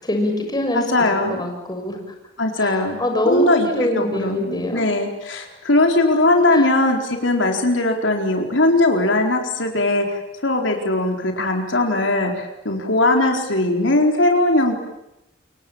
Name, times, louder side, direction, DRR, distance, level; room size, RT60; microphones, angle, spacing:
voice 1, 0.0-0.8 1.3-2.0 2.6-4.8 6.5-6.7, left 1 dB, 20° left, 3 dB, 6.4 m, -24 dB
voice 2, 0.7-1.4 2.4-3.0 3.3-14.8, left 2 dB, 70° left, 3 dB, 4.4 m, -19 dB
28.5 x 23.5 x 8.9 m, 0.90 s
head